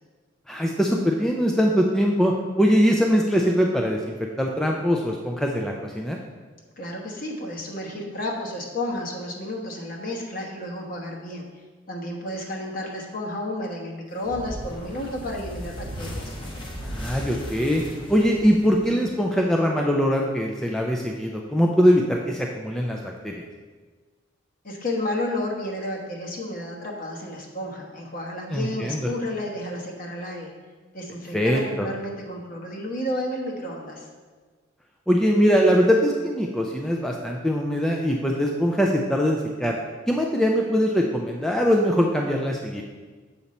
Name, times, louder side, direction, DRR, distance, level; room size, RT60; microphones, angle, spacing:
voice 1, 0.5-6.2 16.8-17.8 18.1-23.4 28.5-29.1 31.3-31.9 35.1-39.8 40.1-42.8, equal, 5° left, 0 dB, 0.3 m, -22 dB
voice 2, 6.8-11.4 11.9-16.4 24.6-30.5 30.9-34.1, left 1 dB, 45° left, 0 dB, 1.1 m, -31 dB
sound 1, 14.2-19.4, equal, 25° left, 0.9 m, -36 dB
7.0 x 5.3 x 4.2 m, 1.4 s
head